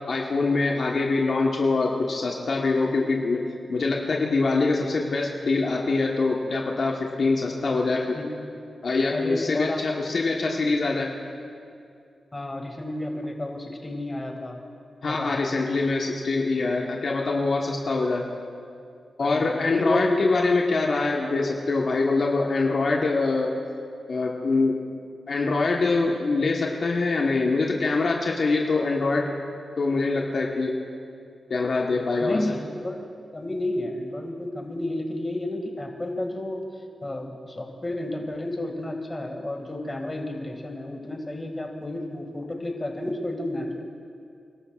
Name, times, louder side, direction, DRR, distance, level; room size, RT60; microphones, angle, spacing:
voice 1, 0.1-8.2 8.8-11.1 15.0-18.3 19.2-23.5 24.1-25.0 25.3-29.3 29.8-30.7 31.5-32.4, left 3 dB, 65° left, -1 dB, 1.3 m, -24 dB
voice 2, 9.1-9.8 10.3-10.5 12.3-14.6 15.1-15.6 19.2-20.2 32.2-33.1 33.3-36.7 37.0-43.8, left 1 dB, 25° left, 2 dB, 2.1 m, -31 dB
28.0 x 13.0 x 2.5 m, 2.4 s
cardioid pair, 65°, 0 cm